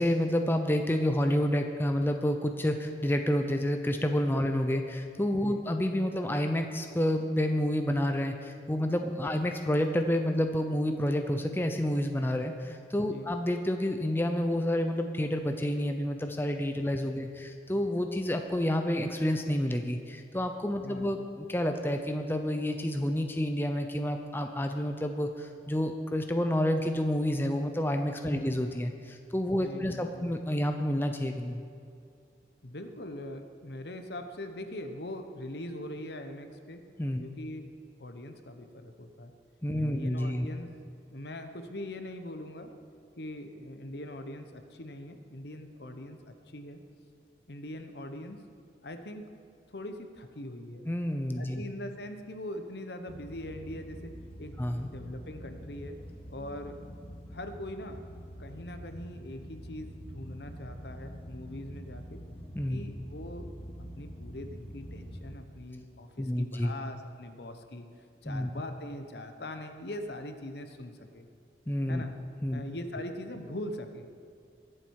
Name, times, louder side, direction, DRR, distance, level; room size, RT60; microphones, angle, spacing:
voice 1, 0.0-31.6 37.0-37.2 39.6-40.5 50.9-51.6 54.6-54.9 62.5-62.8 66.2-66.7 68.3-68.5 71.7-72.0 72.4-72.6, left 1 dB, 10° left, 5 dB, 0.6 m, -29 dB
voice 2, 20.8-21.2 28.3-28.5 29.5-30.3 32.6-36.8 37.2-37.7 38.0-39.3 39.7-40.7 41.1-42.7 43.2-46.8 47.5-48.4 48.8-49.3 49.7-50.9 51.4-54.1 54.4-54.6 54.8-56.0 56.3-56.8 57.3-58.0 58.4-62.2 62.7-63.5 63.9-67.9 68.2-71.3 71.9-72.1 72.5-74.1, left 1 dB, 65° left, 7 dB, 1.0 m, -42 dB
sound 1, 53.1-65.4, equal, 30° left, 1.2 m, -45 dB
22.0 x 7.6 x 4.8 m, 2.4 s
head